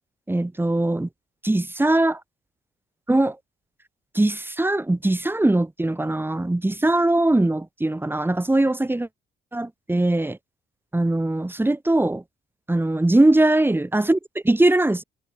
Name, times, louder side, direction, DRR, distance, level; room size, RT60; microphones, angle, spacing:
voice 1, 0.3-1.1 1.4-2.2 3.1-3.4 4.1-9.1 9.5-10.4 10.9-12.2 12.7-14.2 14.4-15.0, right 2 dB, 10° right, 1.9 m, -21 dB
cardioid pair, 90°, 20 cm